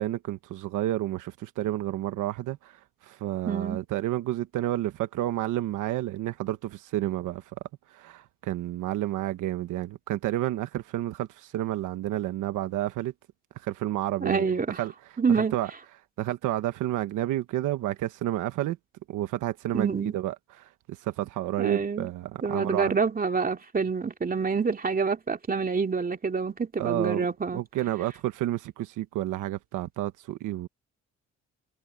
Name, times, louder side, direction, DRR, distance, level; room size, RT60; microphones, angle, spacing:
voice 1, 0.0-2.7 3.0-7.4 7.9-13.1 13.6-14.9 15.5-15.7 16.2-18.8 19.1-23.0 26.8-27.2 27.5-30.7, right 14 dB, 90° right, 1.3 m, -30 dB
voice 2, 3.4-3.8 14.2-14.8 15.2-15.5 19.7-20.2 21.6-22.1 22.4-27.6, right 5 dB, 30° right, 2.7 m, -27 dB
cardioid pair, 90°, 30 cm